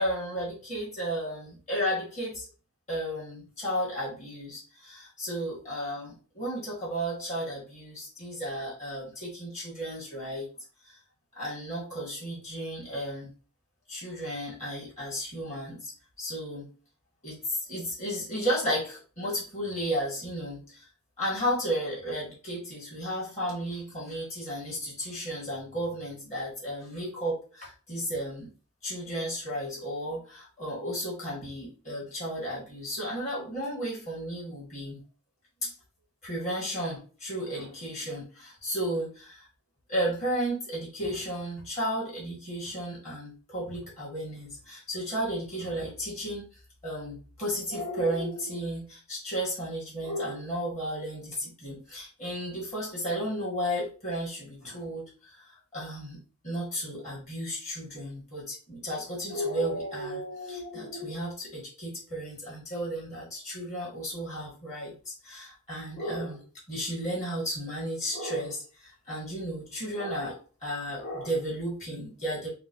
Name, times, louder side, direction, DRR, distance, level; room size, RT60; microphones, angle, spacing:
voice 1, 0.0-2.5 2.9-10.5 10.8-11.0 11.3-13.3 13.9-15.9 16.2-16.7 17.2-20.9 21.2-28.5 28.8-35.0 35.6-35.7 36.2-39.5 39.9-46.5 46.8-66.4 66.7-72.5, equal, 35° left, -7 dB, 1.6 m, -33 dB
4.1 x 2.2 x 2.9 m, 0.37 s
head